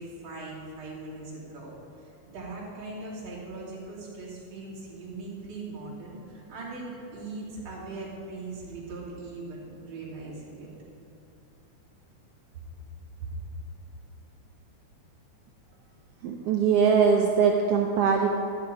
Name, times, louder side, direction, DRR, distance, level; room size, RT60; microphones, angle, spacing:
voice 1, 0.0-10.7, right 3 dB, 60° right, -7 dB, 4.1 m, -40 dB
voice 2, 16.2-18.3, right 6 dB, 85° right, 2 dB, 1.3 m, -22 dB
14.0 x 9.2 x 4.8 m, 2.8 s
omnidirectional pair, 3.6 m